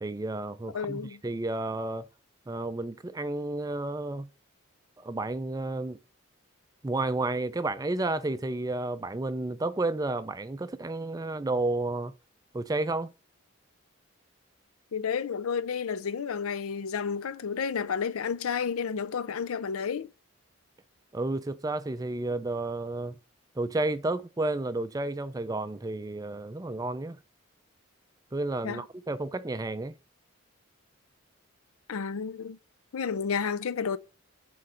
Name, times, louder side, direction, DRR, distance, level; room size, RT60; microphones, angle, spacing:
voice 1, 0.0-2.1 2.5-4.3 5.0-6.0 6.8-12.1 12.5-13.1 21.1-23.1 23.6-27.2 28.3-29.9, right 2 dB, 15° right, 0.3 m, -31 dB
voice 2, 0.7-1.2 14.9-20.1 28.6-28.8 31.9-32.6 32.9-34.0, left 6 dB, 85° left, 0.5 m, -31 dB
6.7 x 4.0 x 6.3 m
head